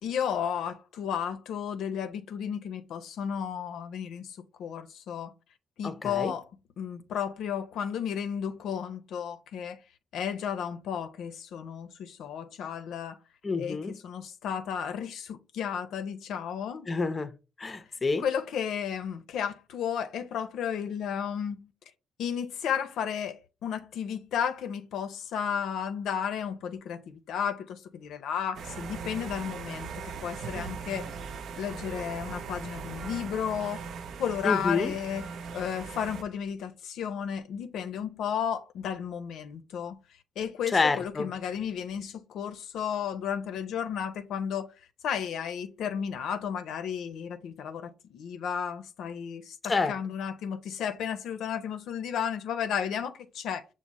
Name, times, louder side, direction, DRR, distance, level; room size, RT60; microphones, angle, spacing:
voice 1, 0.0-5.3 5.8-6.5 6.8-9.8 10.1-13.2 13.6-16.9 18.2-21.7 22.2-29.9 30.2-31.1 31.6-33.8 34.2-40.0 40.4-53.7, left 8 dB, 75° left, 0.5 m, -33 dB
voice 2, 5.8-6.3 13.4-13.9 16.9-17.3 17.6-18.2 34.4-34.9 40.7-41.3 49.7-50.0, left 4 dB, 30° left, 0.5 m, -28 dB
sound 1, 28.5-36.2, right 6 dB, 65° right, 0.4 m, -39 dB
6.1 x 2.0 x 4.0 m
cardioid pair, 90°, 0 cm